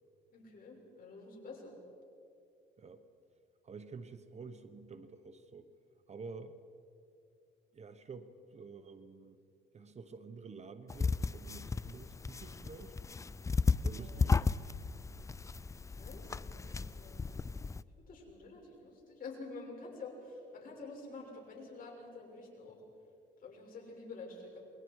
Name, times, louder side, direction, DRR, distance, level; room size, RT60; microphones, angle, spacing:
voice 1, 0.3-1.8 13.9-14.2 15.9-17.2 18.1-22.8 23.4-24.6, left 3 dB, 45° left, 0 dB, 6.3 m, -49 dB
voice 2, 3.6-5.7 6.1-6.6 7.7-9.4 9.7-12.9 13.8-14.4, right 4 dB, 35° right, 10 dB, 1.0 m, -49 dB
sound 1, 10.9-17.8, left 4 dB, 15° left, 0.4 m, -34 dB
28.0 x 21.5 x 4.8 m, 2.5 s
cardioid pair, 105°, 19 cm